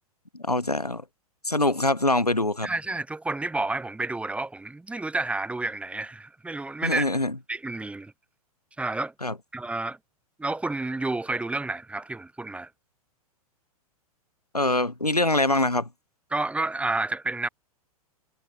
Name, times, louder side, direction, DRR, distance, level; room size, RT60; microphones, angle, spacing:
voice 1, 0.4-1.0 1.4-2.7 6.8-7.3 9.2-9.3 14.5-15.9, left 2 dB, 85° left, 3.6 m, -24 dB
voice 2, 2.6-7.1 7.5-8.1 8.8-9.1 9.5-10.0 10.4-12.7 16.3-17.5, right 2 dB, 5° right, 5.8 m, -30 dB
figure-of-eight pair, 100°, 19 cm